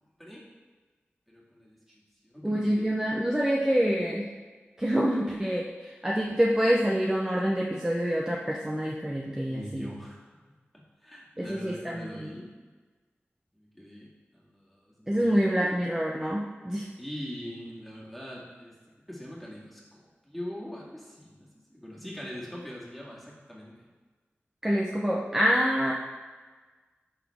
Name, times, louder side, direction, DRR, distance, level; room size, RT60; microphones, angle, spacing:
voice 1, 1.3-2.9 9.5-10.2 11.0-12.5 13.5-15.4 17.0-18.7 19.1-23.9, equal, ahead, -5 dB, 2.1 m, -42 dB
voice 2, 2.4-4.3 4.8-9.9 11.4-12.3 15.1-16.9 24.6-25.9, equal, 15° right, -2 dB, 0.7 m, -26 dB
11.0 x 3.9 x 3.5 m, 1.4 s
wide cardioid pair, 50°, 4 cm